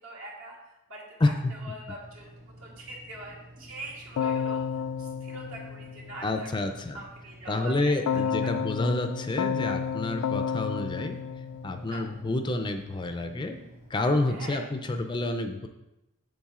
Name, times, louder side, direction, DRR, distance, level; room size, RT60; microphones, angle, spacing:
voice 1, 0.0-6.5 6.9-8.5 11.9-12.0 14.3-14.6, right 1 dB, 70° right, -3 dB, 2.2 m, -44 dB
sound 1, 2.0-13.9, right 1 dB, 30° right, 1.4 m, -51 dB
Keyboard (musical), 4.2-6.5 8.1-12.3, left 7 dB, 85° left, 0.3 m, -31 dB
voice 2, 6.2-7.0 7.5-11.2 11.6-13.6 13.9-15.7, left 2 dB, 20° left, 6 dB, 0.4 m, -28 dB
7.4 x 7.2 x 3.7 m, 0.95 s
head